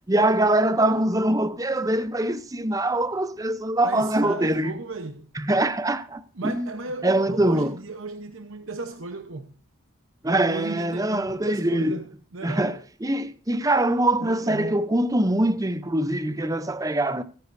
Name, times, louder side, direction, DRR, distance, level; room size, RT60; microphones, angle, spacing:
voice 1, 0.1-4.7 5.4-6.7 7.0-7.7 10.2-12.0 12.4-17.2, right 1 dB, 15° right, 0.6 m, -23 dB
voice 2, 3.8-5.3 6.3-9.5 10.5-12.8 14.2-14.9, right 3 dB, 65° right, 1.0 m, -35 dB
22.5 x 10.5 x 2.6 m
head